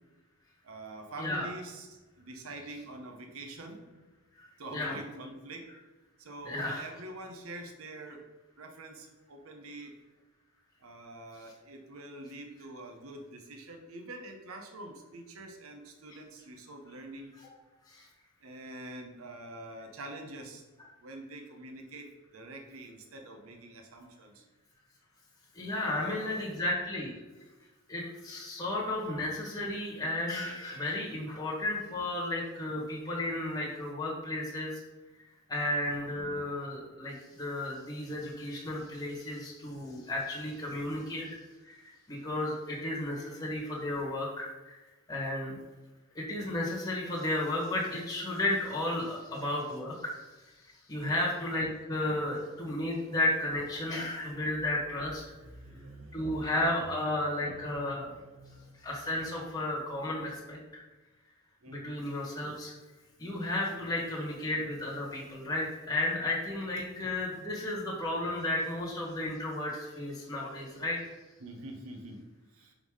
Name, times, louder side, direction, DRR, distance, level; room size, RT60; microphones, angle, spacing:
voice 1, 0.6-4.0 4.6-5.7 6.2-8.2 8.6-9.9 10.8-17.3 18.4-20.6 21.0-24.4 25.7-26.5 51.0-51.3 55.3-57.0 57.6-58.7 61.6-62.0 63.7-64.0 71.4-72.2 72.5-72.7, right 1 dB, 85° right, 3 dB, 0.8 m, -46 dB
voice 2, 4.4-4.9 6.4-6.8 17.4-17.5 17.9-18.1 25.5-27.1 27.9-34.8 35.5-41.3 41.6-44.8 45.1-45.5 46.1-50.2 50.6-55.2 56.1-58.1 58.8-60.8 61.7-62.7 63.2-71.0, left 1 dB, 20° left, -5 dB, 1.3 m, -33 dB
5.4 x 3.7 x 4.7 m, 1.2 s
head